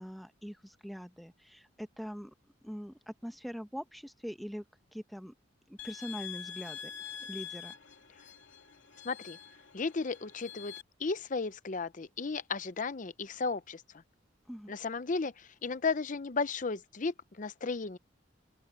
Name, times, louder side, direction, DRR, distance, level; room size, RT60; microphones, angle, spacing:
voice 1, 0.0-2.3 2.6-4.6 4.9-5.3 5.7-6.9 7.2-7.7 14.5-14.7, equal, ahead, 1.1 m, -42 dB
sound 1, 5.8-10.8, left 9 dB, 90° left, 2.4 m, -46 dB
voice 2, 9.0-9.4 9.7-10.7 11.0-13.8 14.7-18.0, left 4 dB, 40° left, 0.7 m, -34 dB
open air
head